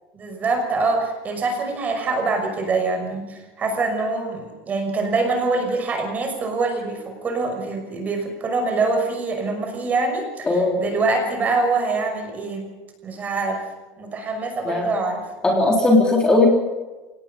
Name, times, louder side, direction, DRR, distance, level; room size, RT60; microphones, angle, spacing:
voice 1, 0.1-12.7 13.0-13.6 14.0-15.2, right 3 dB, 25° right, 4 dB, 5.8 m, -24 dB
voice 2, 10.5-10.8 14.7-14.9 15.4-16.5, left 2 dB, 10° left, -1 dB, 3.8 m, -17 dB
28.0 x 18.5 x 5.5 m, 1.2 s
cardioid pair, 160°, 6 cm